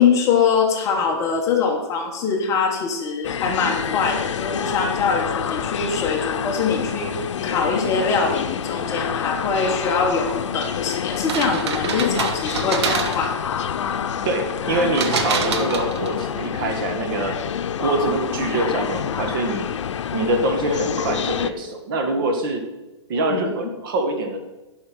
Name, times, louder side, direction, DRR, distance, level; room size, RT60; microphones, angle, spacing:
voice 1, 0.0-13.3 23.3-23.5, left 5 dB, 20° left, 1 dB, 1.3 m, -23 dB
sound 1, 3.2-21.5, left 8 dB, 90° left, 0.7 m, -27 dB
sound 2, 11.1-13.4 14.9-16.2, right 5 dB, 70° right, 1.3 m, -26 dB
voice 2, 14.2-17.3 17.8-19.7 20.1-22.6 23.1-24.4, right 2 dB, 45° right, 4 dB, 1.7 m, -24 dB
11.0 x 5.6 x 6.1 m, 1.1 s
hypercardioid pair, 160°, 15 cm